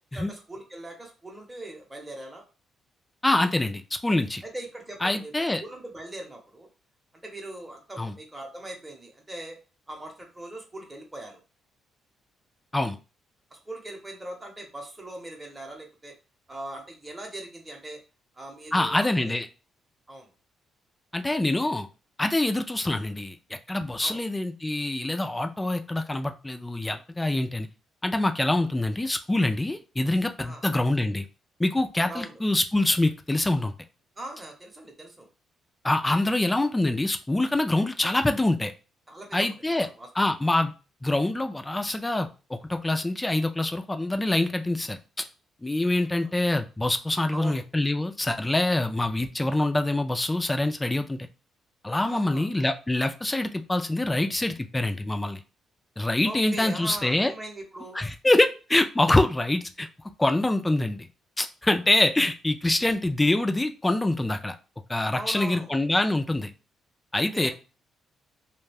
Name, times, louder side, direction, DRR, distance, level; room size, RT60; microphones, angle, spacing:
voice 1, 0.1-2.4 4.4-5.3 5.6-6.7 7.2-9.6 9.9-11.4 13.5-16.1 16.5-18.0 18.3-19.3 20.1-20.3 24.0-24.2 30.4-30.6 32.1-32.4 34.2-35.3 39.1-39.5 39.8-40.1 40.4-40.5 45.9-46.3 47.3-47.6 52.1-52.5 56.2-58.0 65.1-65.7 67.1-67.5, right 1 dB, 15° right, 1 dB, 0.8 m, -40 dB
voice 2, 3.2-4.4 5.0-5.6 8.0-8.1 12.7-13.0 18.7-19.5 21.1-21.9 22.2-23.4 23.7-27.7 28.0-31.3 31.6-33.7 35.8-38.7 39.3-39.9 40.2-40.7 41.0-45.0 45.6-51.3 51.8-55.4 56.0-57.3 57.9-59.9 60.2-61.1 61.4-64.5 64.9-66.5 67.1-67.5, left 2 dB, 15° left, 7 dB, 0.3 m, -25 dB
2.4 x 2.2 x 3.3 m, 0.32 s
cardioid pair, 90°, 0 cm